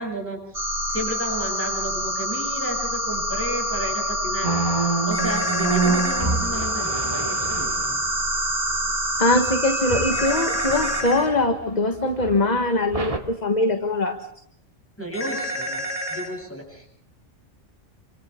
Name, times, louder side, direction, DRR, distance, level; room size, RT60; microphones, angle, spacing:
voice 1, 0.0-4.7 5.1-8.0 15.0-15.8 16.1-16.9, right 1 dB, 10° left, 0 dB, 8.1 m, -33 dB
sound 1, 0.5-11.0, equal, 65° right, 4.3 m, -26 dB
sound 2, 4.4-8.0 9.3-11.6 12.2-12.4 12.9-13.2, right 4 dB, 25° right, 2.3 m, -27 dB
sound 3, 5.1-6.2 10.1-11.3 15.1-16.3, equal, 75° left, 6.3 m, -29 dB
voice 2, 9.2-14.3, left 2 dB, 35° left, 5 dB, 1.5 m, -22 dB
29.0 x 27.0 x 3.7 m, 0.68 s
omnidirectional pair, 1.3 m